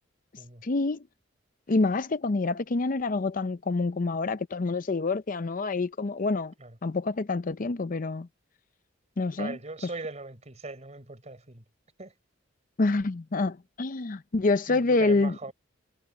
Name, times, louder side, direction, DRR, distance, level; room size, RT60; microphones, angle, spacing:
voice 1, 0.6-1.0 1.7-6.5 6.8-8.3 9.2-9.6 12.8-15.5, left 3 dB, 45° left, 0.6 m, -27 dB
voice 2, 9.4-11.6 12.0-12.1 14.7-15.5, right 3 dB, 35° right, 4.2 m, -40 dB
head